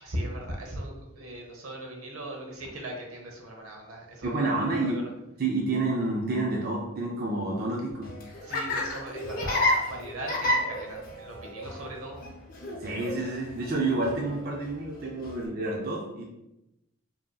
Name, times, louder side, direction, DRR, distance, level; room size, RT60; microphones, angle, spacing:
voice 1, 0.0-5.0 8.4-12.2, right 1 dB, 80° right, 1 dB, 0.9 m, -38 dB
voice 2, 4.2-5.0 5.4-8.1 12.8-16.2, right 2 dB, 45° right, -2 dB, 0.5 m, -29 dB
Laughter, 7.9-15.5, left 1 dB, 40° left, 0.6 m, -32 dB
5.1 x 2.8 x 2.3 m, 0.89 s
head